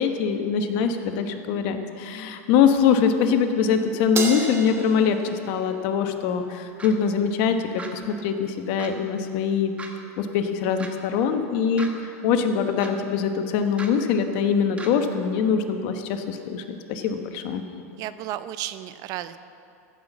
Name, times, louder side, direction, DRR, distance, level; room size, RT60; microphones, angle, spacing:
voice 1, 0.0-9.7 10.2-17.6, left 6 dB, 60° left, 7 dB, 1.1 m, -23 dB
Crash cymbal, 4.2-6.7, right 4 dB, 30° right, 1.8 m, -33 dB
sound 1, 6.8-6.9 7.8-7.9 8.8-8.9 9.8-9.9 10.8-10.9 11.8-11.9 12.8-12.9 13.8-13.9 14.8-14.9, right 3 dB, 15° right, 1.3 m, -37 dB
voice 2, 18.0-19.4, right 13 dB, 50° right, 13 dB, 0.5 m, -33 dB
14.5 x 5.9 x 7.2 m, 2.6 s
supercardioid pair, 120°, 8 cm